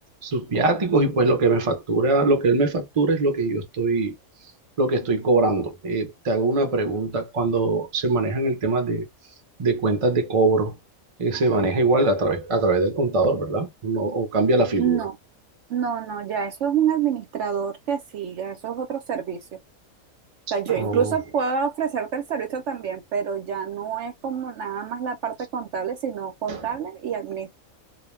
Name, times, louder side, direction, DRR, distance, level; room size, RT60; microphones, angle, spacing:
voice 1, 0.2-4.2 4.8-9.1 9.6-10.7 11.2-15.0 20.7-21.1 26.5-26.6, right 3 dB, 35° right, 0.5 m, -22 dB
voice 2, 14.7-15.2 15.7-19.6 20.5-27.5, right 7 dB, 65° right, 0.8 m, -27 dB
2.4 x 2.1 x 3.1 m
omnidirectional pair, 1.5 m